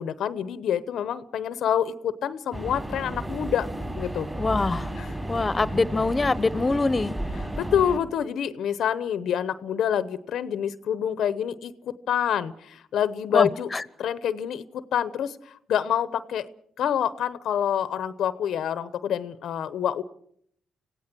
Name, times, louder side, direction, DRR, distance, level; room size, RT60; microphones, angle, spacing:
voice 1, 0.0-3.7 4.0-4.3 5.0-5.1 7.6-13.7 14.0-16.5 16.8-20.0, left 9 dB, 75° left, 14 dB, 0.9 m, -27 dB
sound 1, 2.5-8.0, right 1 dB, 20° right, 5.4 m, -33 dB
voice 2, 4.3-4.9 5.3-7.2 13.3-13.8, left 3 dB, 30° left, 17 dB, 1.1 m, -24 dB
26.0 x 16.5 x 6.2 m, 0.66 s
supercardioid pair, 60°, 0 cm